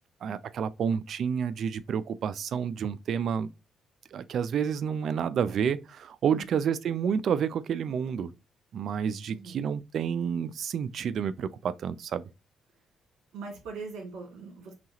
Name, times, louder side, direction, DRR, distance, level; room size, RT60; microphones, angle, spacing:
voice 1, 0.2-3.5 4.1-8.3 8.7-12.2, right 7 dB, 65° right, 0.4 m, -29 dB
voice 2, 9.3-9.7 13.3-14.7, right 4 dB, 85° right, 2.2 m, -41 dB
5.8 x 2.4 x 2.8 m
cardioid pair, 90°, 0 cm